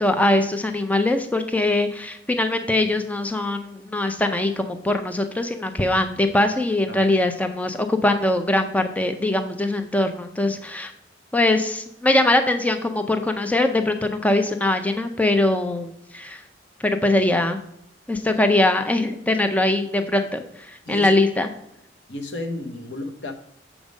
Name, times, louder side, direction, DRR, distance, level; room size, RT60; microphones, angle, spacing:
voice 1, 0.0-10.9 11.3-16.4 16.8-17.6 18.1-21.5, left 2 dB, 10° left, 0.5 m, -22 dB
voice 2, 20.8-21.2 22.1-23.3, left 1 dB, 70° left, 1.0 m, -32 dB
7.1 x 5.2 x 5.2 m
head